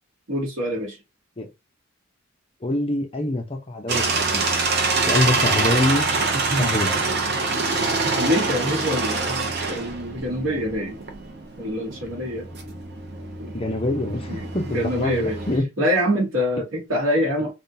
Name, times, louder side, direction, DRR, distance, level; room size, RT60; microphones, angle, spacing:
voice 1, 0.3-1.0 6.5-6.8 8.1-11.0 11.6-12.4 13.4-13.5 14.3-15.4 15.8-17.5, equal, 75° right, 1.1 m, -25 dB
voice 2, 2.6-4.7 5.0-6.1 6.6-7.0 8.1-8.2 13.5-15.7, left 1 dB, 25° left, 0.6 m, -25 dB
sound 1, 3.9-15.6, right 3 dB, 50° right, 0.6 m, -25 dB
3.5 x 2.2 x 2.7 m
head